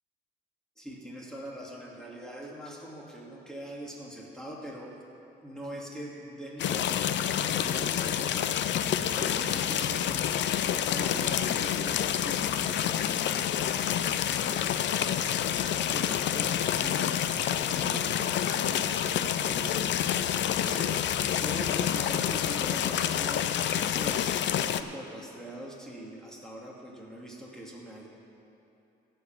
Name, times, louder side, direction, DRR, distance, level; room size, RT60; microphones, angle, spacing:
voice 1, 0.8-5.0 5.4-17.1 17.7-20.0 20.6-21.0 21.4-23.5 24.0-28.1, right 1 dB, 5° left, -3 dB, 2.3 m, -43 dB
sound 1, 6.6-24.8, left 10 dB, 65° left, 0.5 m, -28 dB
15.5 x 5.4 x 7.4 m, 2.8 s
cardioid pair, 90°, 20 cm